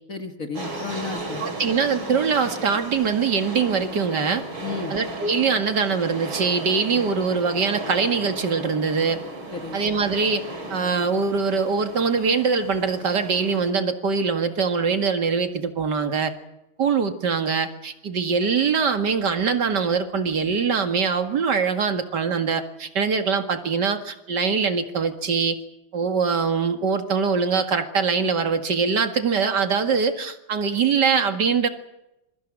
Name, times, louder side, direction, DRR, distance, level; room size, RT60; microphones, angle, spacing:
voice 1, 0.1-1.4 4.6-5.0 9.5-9.8, left 4 dB, 45° left, 6 dB, 1.8 m, -33 dB
sound 1, 0.5-13.7, right 2 dB, 75° right, 3.9 m, -35 dB
voice 2, 1.4-4.4 4.9-9.2 9.7-10.4 10.7-16.3 16.8-25.6 25.9-31.7, right 5 dB, 55° right, 7 dB, 2.5 m, -23 dB
27.0 x 23.0 x 6.2 m, 0.91 s
omnidirectional pair, 2.2 m